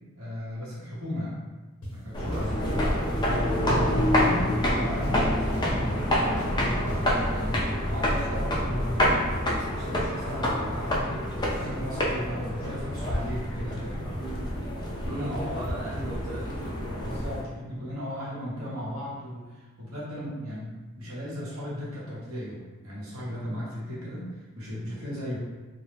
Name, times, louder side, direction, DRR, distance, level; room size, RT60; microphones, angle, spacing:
voice 1, 0.1-1.4 1.9-2.8 3.3-4.5 4.8-14.1 15.0-15.7 17.0-25.4, equal, 65° right, -7 dB, 0.9 m, -36 dB
sound 1, 1.8-1.9 2.3-3.3 3.7-4.7 5.0-7.3, equal, 70° left, 0.6 m, -39 dB
sound 2, 2.1-17.4, equal, 20° left, 0.3 m, -27 dB
voice 2, 2.2-2.5 14.2-17.2, right 1 dB, 90° right, -7 dB, 0.5 m, -38 dB
2.2 x 2.0 x 3.2 m, 1.2 s
head